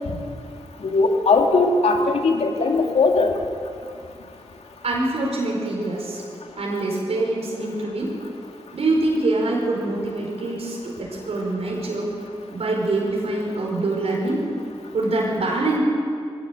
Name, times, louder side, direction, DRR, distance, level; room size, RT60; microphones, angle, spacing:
voice 1, 0.8-3.3, left 3 dB, 90° left, 2 dB, 2.5 m, -19 dB
voice 2, 4.8-6.2 6.6-8.1 8.7-12.1 12.5-14.4 14.9-15.8, right 2 dB, 80° right, -2 dB, 5.0 m, -24 dB
22.0 x 16.0 x 8.2 m, 2.3 s
wide cardioid pair, 90°, 10 cm